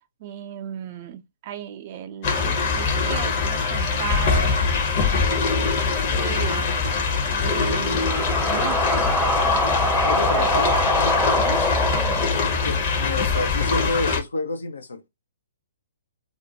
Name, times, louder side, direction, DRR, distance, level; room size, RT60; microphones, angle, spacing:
voice 1, 0.2-4.6 6.1-6.7 7.4-9.8 10.1-11.6 11.9-12.3, right 10 dB, 40° right, 0.5 m, -35 dB
sound 1, 2.2-14.2, left 4 dB, 45° left, 0.8 m, -23 dB
voice 2, 4.7-5.6 10.0-10.7 12.2-15.1, left 3 dB, 75° left, 0.5 m, -31 dB
sound 2, 7.8-13.0, left 1 dB, 5° left, 0.6 m, -24 dB
2.5 x 2.1 x 2.8 m
figure-of-eight pair, 120°, 0 cm